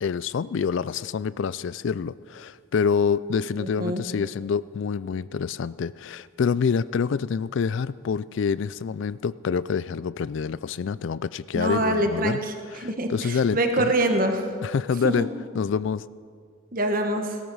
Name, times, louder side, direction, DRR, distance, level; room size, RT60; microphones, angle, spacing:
voice 1, 0.0-12.4 12.7-13.9 14.6-15.3 15.5-16.0, left 6 dB, 60° left, 19 dB, 0.3 m, -27 dB
voice 2, 3.6-4.0 11.5-14.5 15.0-15.3 16.7-17.4, right 1 dB, 40° right, 5 dB, 1.3 m, -25 dB
18.0 x 12.5 x 5.5 m, 2.1 s
head